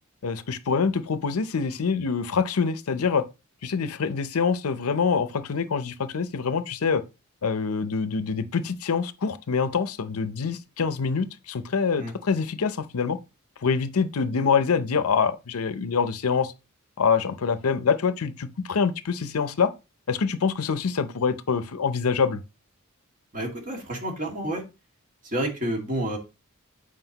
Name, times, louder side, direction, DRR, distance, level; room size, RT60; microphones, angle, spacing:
voice 1, 0.2-3.2 3.6-7.0 7.4-13.2 13.6-16.5 17.0-19.7 20.1-22.4, left 5 dB, 85° left, 0.6 m, -25 dB
voice 2, 23.3-24.6 25.2-26.2, right 1 dB, 40° right, 2.0 m, -29 dB
7.9 x 4.8 x 2.9 m
head